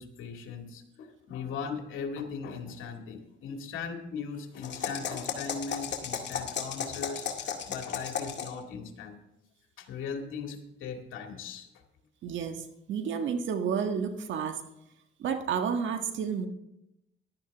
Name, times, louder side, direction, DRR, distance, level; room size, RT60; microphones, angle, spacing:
voice 1, 0.0-9.2 9.8-11.7, left 5 dB, 85° left, 3 dB, 2.2 m, -39 dB
sound 1, 4.6-8.6, left 7 dB, 60° left, 2.2 m, -35 dB
voice 2, 12.2-14.6 15.2-16.5, right 7 dB, 75° right, 6 dB, 1.6 m, -31 dB
14.5 x 12.0 x 3.5 m, 0.85 s
cardioid pair, 90°, 20 cm